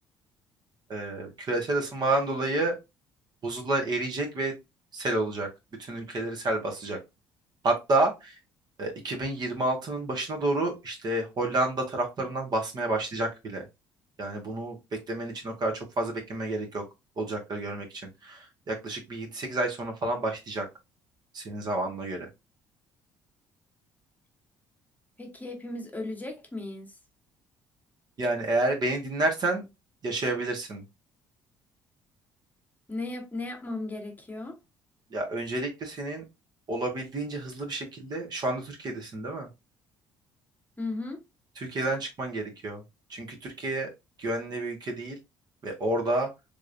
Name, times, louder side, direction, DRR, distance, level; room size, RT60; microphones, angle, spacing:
voice 1, 0.9-2.8 3.4-4.6 4.9-5.5 5.8-7.0 7.6-8.3 8.8-13.6 14.2-14.8 15.1-16.8 17.2-20.6 21.3-22.3 28.2-29.6 30.0-30.8 35.1-36.2 36.7-39.5 41.6-42.8 43.1-43.9 44.2-45.1 45.6-46.3, right 2 dB, 45° right, 1.5 m, -29 dB
voice 2, 25.2-27.0 32.9-34.6 40.8-41.2, left 2 dB, 15° left, 1.4 m, -36 dB
3.4 x 3.1 x 2.6 m
supercardioid pair, 70°, 10 cm